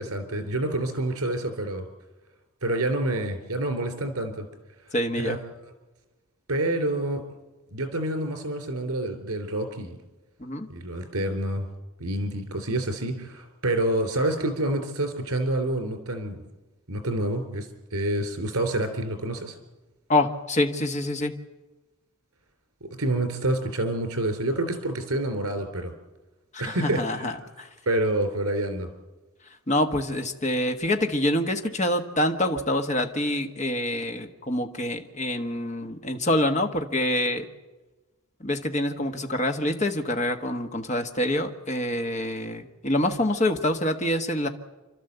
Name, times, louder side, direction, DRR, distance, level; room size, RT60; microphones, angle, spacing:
voice 1, 0.0-1.8 2.6-4.4 4.8-5.4 6.5-7.2 7.7-10.0 10.7-11.7 12.0-16.4 16.9-19.6 22.8-25.9 26.6-27.4 27.8-28.9, right 1 dB, 80° right, 6 dB, 3.3 m, -28 dB
voice 2, 4.9-5.4 10.4-10.7 20.1-21.3 26.5-27.3 27.6-27.7 29.7-37.4 38.4-44.5, left 1 dB, 30° left, 5 dB, 1.4 m, -26 dB
29.5 x 12.5 x 8.1 m, 1.2 s
head